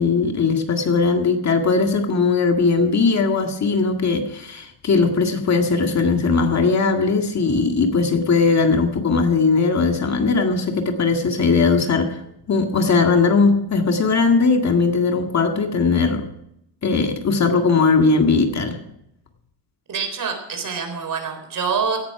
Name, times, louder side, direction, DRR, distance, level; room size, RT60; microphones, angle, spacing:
voice 1, 0.0-12.2 12.5-16.3 16.8-18.8, left 4 dB, 35° left, 4 dB, 2.0 m, -19 dB
voice 2, 19.9-22.0, right 6 dB, 45° right, 6 dB, 4.0 m, -25 dB
17.0 x 11.0 x 4.8 m, 0.81 s
cardioid pair, 105°, 46 cm